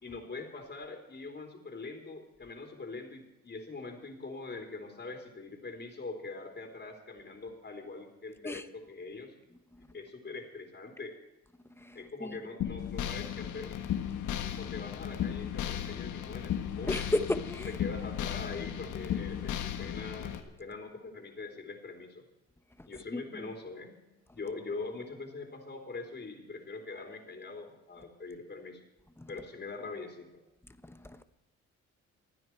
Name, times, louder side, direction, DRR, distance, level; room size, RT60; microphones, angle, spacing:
voice 1, 0.0-9.4 9.9-11.2 11.9-13.8 14.6-17.0 17.7-20.3 20.6-22.2 22.9-24.0 24.3-28.8 29.3-30.4, left 3 dB, 35° left, 3.5 m, -43 dB
voice 2, 11.8-12.4 16.9-17.7 22.8-23.5 29.2-29.3 30.8-31.2, left 1 dB, 10° left, 1.2 m, -35 dB
sound 1, 12.6-20.4, left 10 dB, 80° left, 1.6 m, -35 dB
28.0 x 9.8 x 4.6 m
cardioid pair, 90°, 30 cm